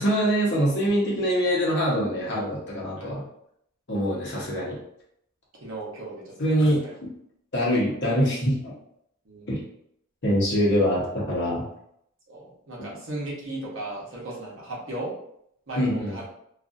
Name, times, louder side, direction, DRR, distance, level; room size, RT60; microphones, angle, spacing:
voice 1, 0.0-3.2 3.9-4.8 6.4-7.1 7.5-8.7 9.5-9.6 10.2-11.6 15.8-16.2, equal, 55° left, -5 dB, 0.9 m, -24 dB
voice 2, 5.6-6.3 6.8-6.9 9.3-9.6 12.3-15.1 15.7-16.2, right 2 dB, 60° right, -5 dB, 0.9 m, -36 dB
2.6 x 2.5 x 2.5 m, 0.73 s
head